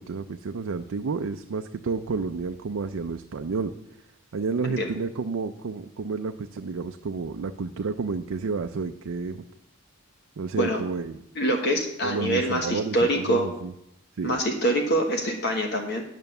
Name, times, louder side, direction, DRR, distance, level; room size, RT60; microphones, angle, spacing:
voice 1, 0.0-3.7 4.3-9.4 10.4-11.2 12.0-13.7 14.2-14.4, right 4 dB, 75° right, 6 dB, 0.4 m, -30 dB
voice 2, 11.4-13.5 14.2-16.0, right 1 dB, 50° left, 3 dB, 1.2 m, -25 dB
9.1 x 5.8 x 6.6 m, 0.78 s
head